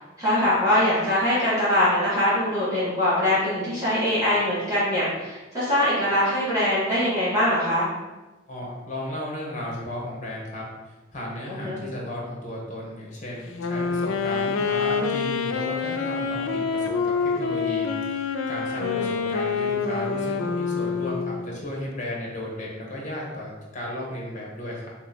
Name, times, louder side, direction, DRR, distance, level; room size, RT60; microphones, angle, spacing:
voice 1, 0.2-7.9 11.5-11.8 18.8-19.1, left 1 dB, 20° right, -11 dB, 1.4 m, -23 dB
voice 2, 8.5-24.9, left 1 dB, 40° left, -3 dB, 1.1 m, -34 dB
Wind instrument woodwind instrument, 13.5-21.6, left 5 dB, 85° left, 0.4 m, -26 dB
3.7 x 3.0 x 4.0 m, 1.1 s
head